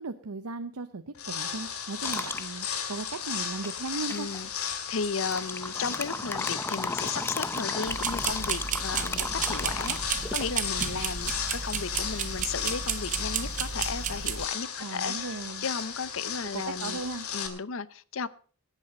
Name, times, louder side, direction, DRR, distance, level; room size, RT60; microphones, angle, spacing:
voice 1, 0.0-4.3 14.8-15.7 16.5-17.3, right 3 dB, 85° right, 0.7 m, -37 dB
sound 1, 1.1-17.5, left 7 dB, 85° left, 2.3 m, -35 dB
sound 2, 2.0-2.5 3.6-4.4 5.2-10.5, left 3 dB, 10° left, 0.6 m, -35 dB
voice 2, 4.1-17.0 17.3-18.3, left 5 dB, 60° left, 0.7 m, -35 dB
sound 3, 7.9-14.5, right 7 dB, 35° right, 0.6 m, -32 dB
18.0 x 8.4 x 5.3 m
head